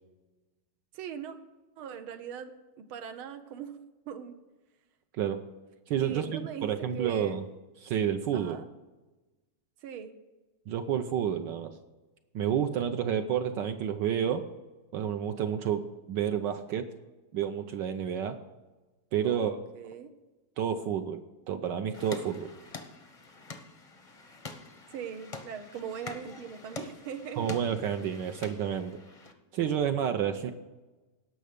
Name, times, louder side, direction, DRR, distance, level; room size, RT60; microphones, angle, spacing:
voice 1, 0.9-1.4 1.8-2.5 2.8-3.8 4.1-4.4 6.0-7.4 8.3-8.7 9.8-10.1 19.2-20.1 24.9-27.5, right 8 dB, 90° right, 9 dB, 1.8 m, -40 dB
voice 2, 5.9-7.4 7.8-8.6 10.7-11.7 12.3-14.5 14.9-16.9 17.3-18.4 19.1-19.6 20.6-21.2 21.5-22.5 27.4-29.0 29.5-30.5, right 9 dB, 70° right, 7 dB, 1.2 m, -30 dB
sound 1, 21.9-29.3, left 3 dB, 35° left, 0.5 m, -46 dB
17.5 x 6.5 x 5.1 m, 1.2 s
omnidirectional pair, 2.2 m